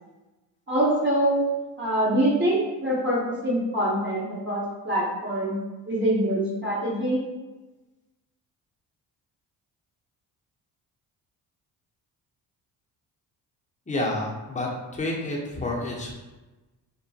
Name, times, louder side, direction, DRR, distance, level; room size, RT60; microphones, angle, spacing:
voice 1, 0.7-1.4 1.8-5.6 5.9-7.2, right 1 dB, 25° right, -6 dB, 1.0 m, -24 dB
voice 2, 13.9-16.2, left 1 dB, 15° left, -3 dB, 0.8 m, -29 dB
3.0 x 2.1 x 2.7 m, 1.1 s
supercardioid pair, 60°, 45 cm